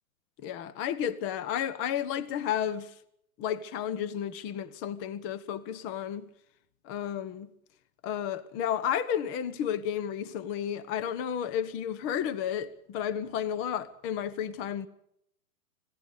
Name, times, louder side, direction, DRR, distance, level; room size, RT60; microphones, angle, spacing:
voice 1, 0.4-2.9 3.4-6.2 6.8-7.5 8.0-14.9, left 9 dB, 30° left, 1.2 m, -32 dB
25.5 x 17.0 x 8.3 m
hypercardioid pair, 140°, 42 cm